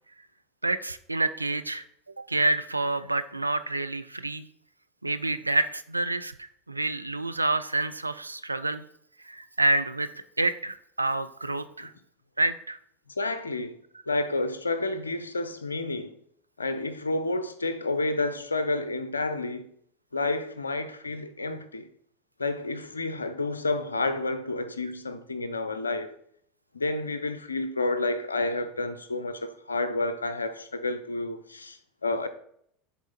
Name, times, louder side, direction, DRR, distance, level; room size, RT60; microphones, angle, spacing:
voice 1, 0.6-1.8 2.3-4.5 5.0-8.8 9.3-10.1 10.4-11.9 12.4-12.8, right 2 dB, 85° right, 0.3 m, -28 dB
voice 2, 13.2-13.7 14.1-16.1 16.6-19.7 20.1-21.9 22.4-26.1 26.7-32.3, left 2 dB, 80° left, 0.5 m, -30 dB
7.3 x 3.6 x 4.2 m
figure-of-eight pair, 80°, 0 cm